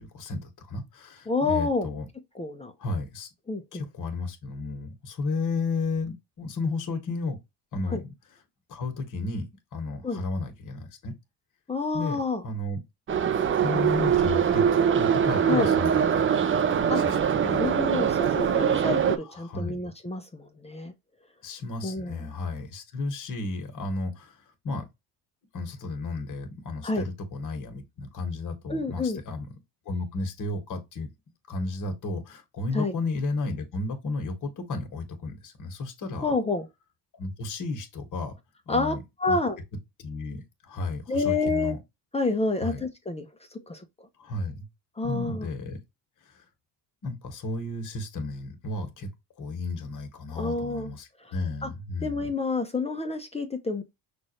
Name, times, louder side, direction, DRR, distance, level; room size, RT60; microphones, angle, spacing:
voice 1, 0.0-2.1 2.8-3.3 3.7-7.4 7.7-8.1 8.7-9.5 9.7-11.1 11.9-12.8 13.6-14.6 14.9-16.3 16.7-17.7 19.1-19.8 21.4-24.9 25.5-29.5 29.9-31.1 31.5-36.3 37.1-38.3 38.7-39.0 39.3-39.4 40.0-41.8 42.6-42.8 44.2-44.7 45.0-45.8 46.2-46.5 47.0-49.1 49.4-52.3, left 3 dB, 50° left, 1.8 m, -33 dB
voice 2, 1.3-1.9 2.4-2.7 3.5-3.8 7.9-8.0 10.0-10.2 11.7-12.4 15.4-15.7 16.9-17.0 17.4-20.9 21.8-22.2 26.8-27.0 28.7-29.2 32.7-32.9 36.2-36.7 38.7-38.9 39.2-39.6 41.1-41.7 42.1-43.8 45.0-45.5 50.4-50.9 51.2-51.3 51.6-51.7 52.0-53.8, left 3 dB, 15° left, 0.8 m, -28 dB
Subway metro underground, 13.1-19.2, right 8 dB, 30° right, 0.6 m, -23 dB
6.1 x 2.6 x 3.1 m
cardioid pair, 115°, 41 cm